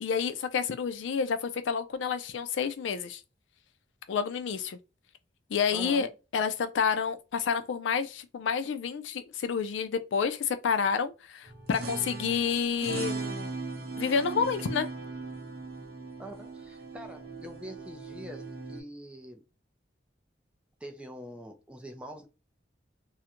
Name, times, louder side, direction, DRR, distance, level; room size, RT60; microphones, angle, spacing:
voice 1, 0.0-3.2 4.1-4.8 5.5-13.5 14.0-14.9, left 6 dB, 80° left, 0.4 m, -29 dB
voice 2, 5.7-6.1 16.2-19.4 20.8-22.3, equal, 5° right, 0.4 m, -44 dB
sound 1, 11.5-18.8, right 3 dB, 50° right, 0.6 m, -38 dB
2.4 x 2.1 x 2.8 m
head